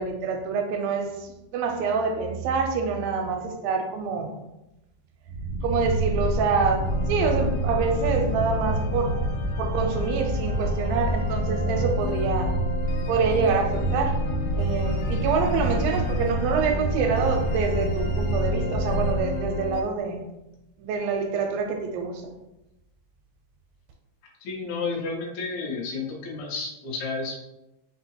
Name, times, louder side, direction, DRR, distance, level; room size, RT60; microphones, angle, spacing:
voice 1, 0.0-4.4 5.6-9.1 9.6-12.5 13.1-14.2 14.6-20.3 20.8-22.3, right 5 dB, 90° right, 3 dB, 2.4 m, -26 dB
sound 1, 5.3-19.2, right 2 dB, 60° right, 0.8 m, -28 dB
sound 2, 6.8-19.8, left 3 dB, 80° left, 2.3 m, -32 dB
voice 2, 24.4-27.4, left 4 dB, 65° left, -2 dB, 2.0 m, -31 dB
5.5 x 2.2 x 4.2 m, 0.93 s
omnidirectional pair, 4.2 m